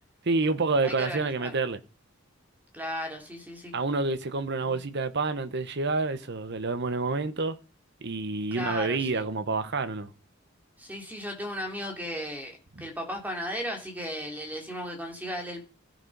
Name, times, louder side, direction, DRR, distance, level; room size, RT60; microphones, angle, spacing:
voice 1, 0.2-1.8 3.7-7.6 8.0-10.1, right 3 dB, 55° right, 1.0 m, -28 dB
voice 2, 0.8-1.6 2.7-3.7 4.6-4.8 8.5-9.3 10.8-15.7, equal, 10° right, 2.9 m, -36 dB
14.5 x 6.0 x 5.4 m
head